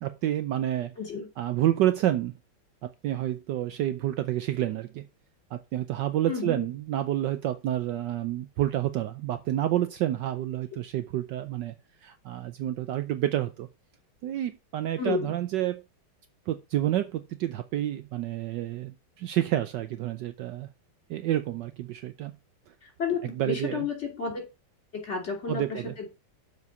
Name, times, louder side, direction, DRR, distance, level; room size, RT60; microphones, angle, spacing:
voice 1, 0.0-0.9 1.4-2.3 2.8-5.0 5.5-11.7 12.0-13.7 14.2-15.8 16.5-20.7 21.1-22.3 23.2-23.9 25.5-25.9, right 13 dB, 70° right, 1.2 m, -29 dB
voice 2, 6.2-6.7 15.0-15.3 22.8-24.4 24.9-26.1, left 5 dB, 35° left, 3.0 m, -32 dB
7.3 x 4.8 x 6.9 m
omnidirectional pair, 2.2 m